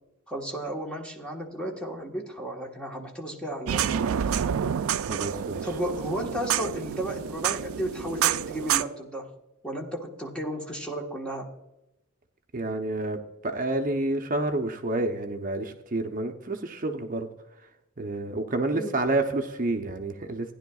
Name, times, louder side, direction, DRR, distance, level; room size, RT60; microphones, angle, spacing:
voice 1, 0.3-4.3 5.6-9.3 9.6-11.5 18.7-18.9, right 1 dB, 5° left, 0 dB, 1.3 m, -34 dB
sound 1, 3.7-8.8, right 9 dB, 75° right, 0.3 m, -28 dB
voice 2, 4.9-5.7 12.5-17.3 18.0-20.5, right 2 dB, 40° right, 5 dB, 0.7 m, -29 dB
15.5 x 10.5 x 2.4 m, 0.91 s
head